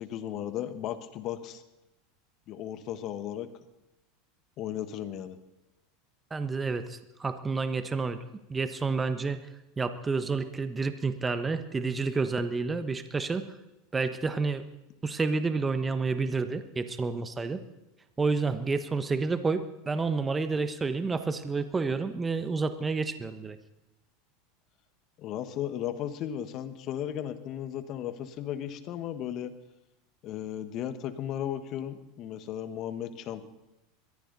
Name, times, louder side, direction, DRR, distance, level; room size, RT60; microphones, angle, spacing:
voice 1, 0.0-1.6 2.5-3.5 4.6-5.4 25.2-29.5 30.2-33.4, left 10 dB, 50° left, 11 dB, 1.5 m, -35 dB
voice 2, 6.3-8.2 8.5-9.4 9.8-13.5 13.9-14.6 15.0-17.6 18.2-23.6, right 4 dB, 20° right, 11 dB, 1.2 m, -29 dB
22.0 x 14.5 x 4.1 m, 0.95 s
hypercardioid pair, 95°, 0 cm